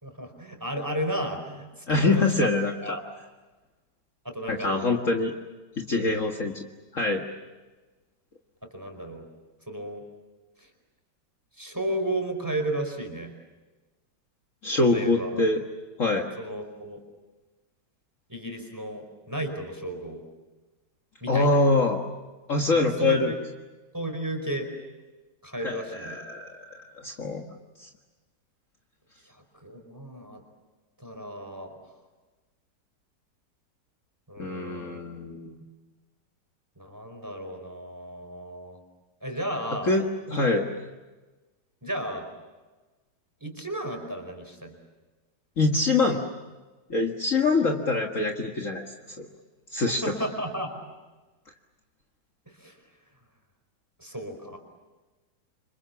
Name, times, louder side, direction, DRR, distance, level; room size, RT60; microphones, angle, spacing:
voice 1, 0.0-2.5 2.8-3.0 4.2-5.0 6.0-6.2 8.7-9.2 9.7-10.0 11.6-13.3 14.8-15.4 16.4-17.0 18.3-20.2 21.2-21.6 22.7-23.2 23.9-24.7 25.4-26.2 29.6-30.4 31.0-31.7 34.3-35.0 36.8-38.8 39.2-39.9 40.3-40.4 41.8-42.3 43.4-44.7 49.9-50.8 52.6-52.8 54.0-54.6, right 1 dB, 10° right, 4 dB, 4.9 m, -33 dB
voice 2, 1.9-3.0 4.5-5.3 5.8-6.6 6.9-7.2 14.6-15.6 16.0-16.3 21.3-22.0 22.5-23.3 25.6-27.4 27.8-27.9 34.4-35.6 39.8-40.7 45.6-46.2 46.9-48.8 49.2-49.3 49.7-50.1, left 3 dB, 45° left, 2 dB, 2.0 m, -24 dB
29.5 x 26.0 x 7.2 m, 1.2 s
omnidirectional pair, 1.9 m